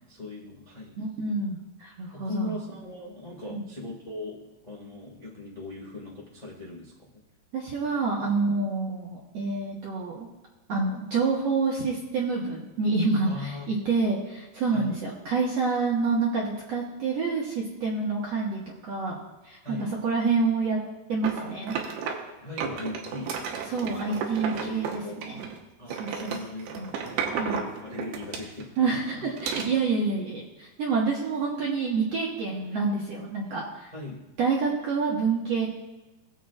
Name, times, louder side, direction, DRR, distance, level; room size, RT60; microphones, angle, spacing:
voice 1, 0.1-1.0 2.1-4.4 4.6-6.9 13.2-13.7 14.7-15.0 19.6-19.9 22.4-23.4 24.3-25.4 25.8-28.8 33.9-34.2, left 2 dB, 55° left, -4 dB, 0.4 m, -39 dB
voice 2, 1.0-2.6 3.5-3.6 7.5-10.3 10.7-19.2 19.4-20.8 21.1-21.8 23.7-25.5 25.9-26.4 26.8-26.9 27.4-27.6 28.8-33.9 34.4-35.7, right 4 dB, 65° right, -3 dB, 1.7 m, -28 dB
sound 1, 21.2-22.3 22.6-25.6 25.9-28.8 29.4-29.7, right 6 dB, 85° right, 3.1 m, -33 dB
20.5 x 7.6 x 2.4 m, 1.1 s
omnidirectional pair, 4.5 m